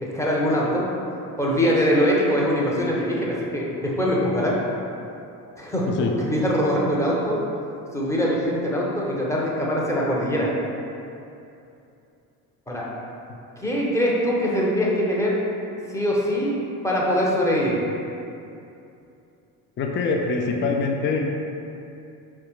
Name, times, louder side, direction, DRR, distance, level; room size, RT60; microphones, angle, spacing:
voice 1, 0.0-0.8 1.4-4.6 5.6-5.9 6.3-7.4 7.9-10.5 12.7-12.8 13.6-15.4 15.9-16.5 16.8-17.8, equal, 5° left, -5 dB, 0.8 m, -22 dB
voice 2, 19.8-21.2, left 4 dB, 25° left, 1 dB, 0.4 m, -24 dB
4.6 x 2.3 x 3.1 m, 2.7 s
hypercardioid pair, 60°, 47 cm